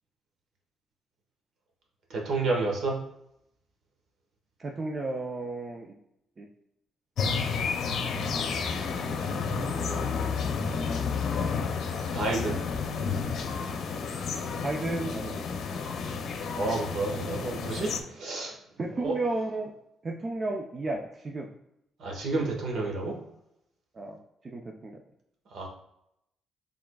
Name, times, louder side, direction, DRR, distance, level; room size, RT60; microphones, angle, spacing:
voice 1, 2.1-3.0 9.1-10.1 12.0-12.6 16.5-18.5 19.0-19.1 22.0-23.2 25.5-25.7, right 3 dB, 70° right, 0 dB, 1.3 m, -31 dB
voice 2, 4.6-5.9 6.4-6.5 14.6-15.4 18.8-19.7 20.0-21.5 23.9-24.2 24.4-25.0, right 2 dB, 35° right, 0 dB, 0.6 m, -33 dB
sound 1, 7.2-18.0, left 5 dB, 65° left, 0.6 m, -31 dB
6.1 x 3.6 x 2.3 m, 0.80 s
cardioid pair, 90°, 0 cm